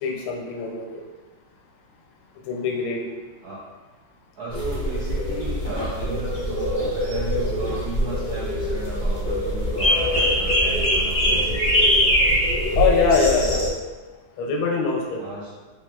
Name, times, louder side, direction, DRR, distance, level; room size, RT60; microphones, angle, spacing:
voice 1, 0.0-1.0 2.5-3.0 12.8-13.6 14.4-15.2, left 5 dB, 85° left, 0 dB, 1.5 m, -22 dB
voice 2, 4.4-11.8 15.2-15.5, right 3 dB, 80° right, -6 dB, 0.8 m, -35 dB
sound 1, 4.5-13.7, equal, 45° left, 0.6 m, -23 dB
3.5 x 3.2 x 2.3 m, 1.3 s
omnidirectional pair, 2.3 m